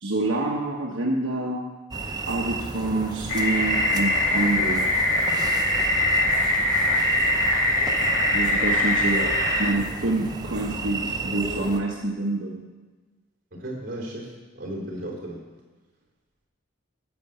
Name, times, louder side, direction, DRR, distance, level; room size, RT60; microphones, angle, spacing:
voice 1, 0.0-1.6 2.3-4.9 8.3-9.3 9.6-12.6, right 2 dB, 75° right, -2 dB, 1.2 m, -27 dB
sound 1, 1.9-11.8, right 3 dB, 20° right, 0.6 m, -32 dB
sound 2, 3.3-9.7, left 1 dB, 80° left, 2.6 m, -22 dB
voice 2, 13.5-15.4, right 1 dB, 45° right, -2 dB, 3.7 m, -35 dB
10.5 x 8.1 x 6.8 m, 1.3 s
head